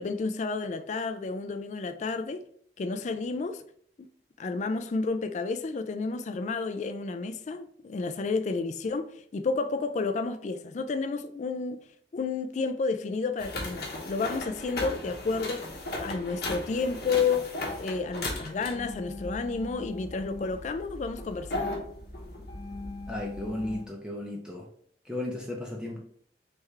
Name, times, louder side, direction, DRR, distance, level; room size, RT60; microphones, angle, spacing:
voice 1, 0.0-2.4 2.8-3.6 4.0-4.1 4.4-11.8 12.1-15.7 16.0-21.8, left 4 dB, 40° left, 0.3 m, -31 dB
sound 1, 13.4-23.8, left 2 dB, 60° left, 0.9 m, -37 dB
voice 2, 23.1-24.7 25.0-26.0, left 1 dB, 5° right, 0.6 m, -35 dB
3.4 x 3.4 x 3.2 m
head